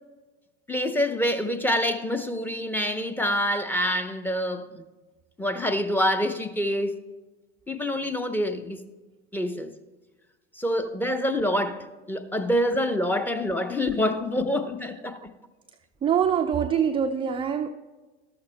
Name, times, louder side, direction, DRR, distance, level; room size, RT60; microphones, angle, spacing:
voice 1, 0.7-4.8 5.4-6.9 7.7-8.8 9.3-9.7 10.6-15.2, equal, 5° left, 0.8 m, -26 dB
voice 2, 16.0-17.7, right 8 dB, 15° right, 0.4 m, -24 dB
13.5 x 12.5 x 2.2 m
hypercardioid pair, 85°, 34 cm